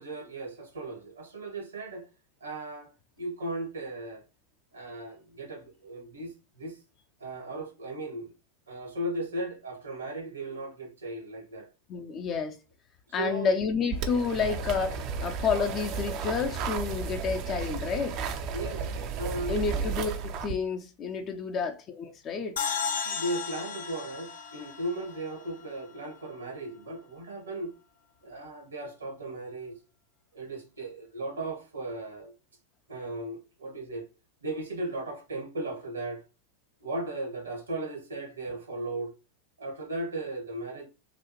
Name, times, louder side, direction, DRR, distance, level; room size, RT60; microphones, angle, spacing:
voice 1, 0.0-2.1 2.4-2.9 3.2-4.2 4.7-6.8 7.2-8.3 8.7-11.7 13.2-13.5 18.5-18.9 19.2-19.8 22.7-27.7 28.2-29.7 30.3-32.3 32.9-34.1 34.4-36.2 36.8-39.1 39.6-40.9, right 2 dB, 70° right, 1.5 m, -36 dB
voice 2, 11.9-12.6 13.1-18.2 19.5-22.6, left 5 dB, 30° left, 0.6 m, -30 dB
sound 1, 13.9-20.5, right 5 dB, 40° right, 0.6 m, -33 dB
sound 2, 22.6-25.9, left 6 dB, 65° left, 0.8 m, -35 dB
5.9 x 2.5 x 3.0 m
figure-of-eight pair, 90°, 0 cm